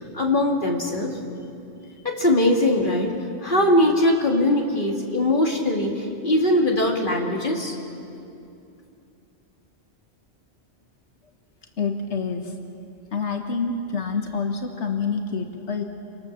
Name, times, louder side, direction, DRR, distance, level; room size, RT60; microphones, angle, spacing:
voice 1, 0.1-1.1 2.0-3.1 3.4-7.7, left 1 dB, 45° left, 0 dB, 2.6 m, -21 dB
voice 2, 11.8-12.5 13.1-15.8, left 5 dB, 80° left, 4 dB, 1.6 m, -27 dB
27.5 x 18.5 x 7.3 m, 2.6 s
omnidirectional pair, 1.2 m